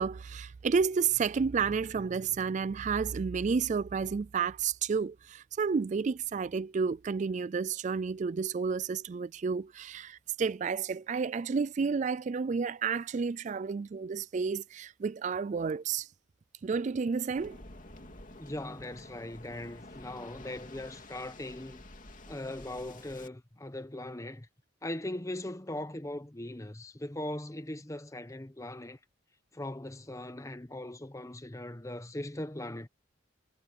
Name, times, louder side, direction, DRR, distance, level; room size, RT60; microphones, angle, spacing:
voice 1, 0.0-16.1 16.6-17.6, right 5 dB, 35° right, 0.3 m, -31 dB
Waves surf, 17.4-23.3, left 2 dB, 40° left, 2.9 m, -50 dB
voice 2, 18.4-21.8 22.3-24.5 24.8-29.0 29.5-32.9, left 1 dB, 15° left, 0.9 m, -40 dB
head